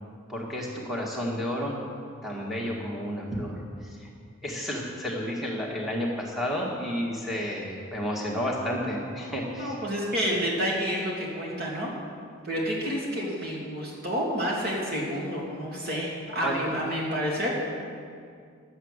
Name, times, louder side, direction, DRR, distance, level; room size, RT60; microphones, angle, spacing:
voice 1, 0.3-1.7 2.2-4.1 4.4-9.8 16.4-16.7, equal, ahead, -4 dB, 1.8 m, -31 dB
voice 2, 9.5-11.9 12.4-17.5, equal, 50° right, -3 dB, 2.8 m, -29 dB
11.0 x 8.2 x 8.1 m, 2.2 s
head